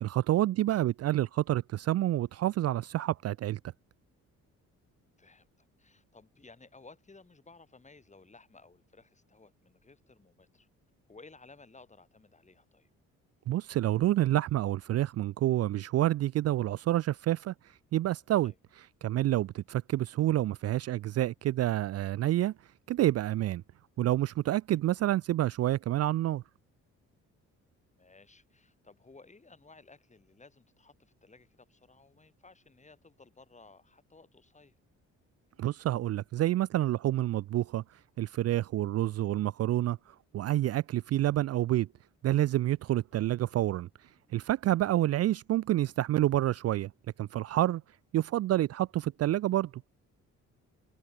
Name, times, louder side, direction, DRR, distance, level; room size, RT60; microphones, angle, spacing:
voice 1, 0.0-3.6 13.5-17.5 17.9-18.5 19.0-22.5 22.9-23.6 24.0-26.4 35.6-37.8 38.2-40.0 40.3-41.9 42.2-43.9 44.3-46.9 47.2-47.8 48.1-49.7, right 14 dB, 55° right, 0.4 m, -28 dB
voice 2, 4.8-10.7 11.1-12.9 18.4-18.6 24.7-25.1 28.0-34.8 43.1-43.3 44.7-45.0, left 3 dB, 25° left, 7.3 m, -57 dB
cardioid pair, 90°, 30 cm